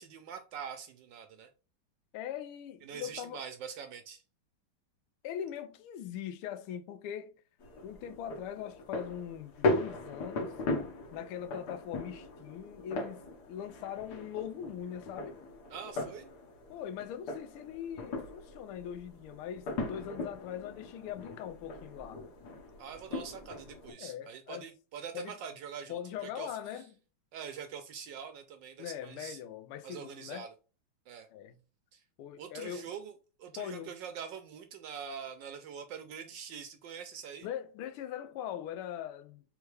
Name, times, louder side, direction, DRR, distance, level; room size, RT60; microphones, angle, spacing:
voice 1, 0.0-1.5 2.8-4.2 15.7-16.3 22.8-26.8 27.3-29.4 29.8-30.5 31.1-31.3 31.9-32.0 32.4-33.1 33.4-37.5, right 7 dB, 75° right, 1.1 m, -44 dB
voice 2, 2.1-3.4 5.2-7.4 7.8-10.7 11.1-13.2 13.5-15.4 16.7-22.2 24.0-24.6 25.1-25.3 25.9-26.9 28.8-30.4 31.3-31.6 32.2-32.9 33.6-33.9 37.4-39.4, left 10 dB, 85° left, 1.5 m, -41 dB
sound 1, 7.6-23.9, left 2 dB, 55° left, 1.5 m, -38 dB
3.6 x 3.4 x 3.1 m
omnidirectional pair, 2.3 m